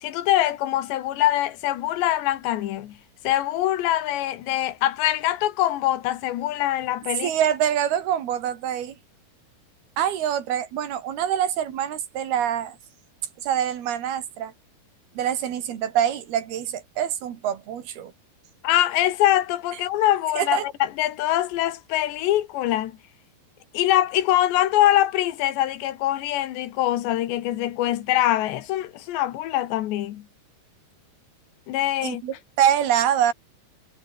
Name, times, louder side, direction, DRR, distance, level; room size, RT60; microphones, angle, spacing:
voice 1, 0.0-3.0 3.3-7.3 18.6-23.0 23.7-30.3 31.7-32.2, left 13 dB, 90° left, 3.7 m, -23 dB
voice 2, 7.2-9.0 10.0-12.8 13.4-14.5 15.2-18.1 20.4-20.7 32.0-33.3, right 10 dB, 65° right, 4.0 m, -25 dB
omnidirectional pair, 4.9 m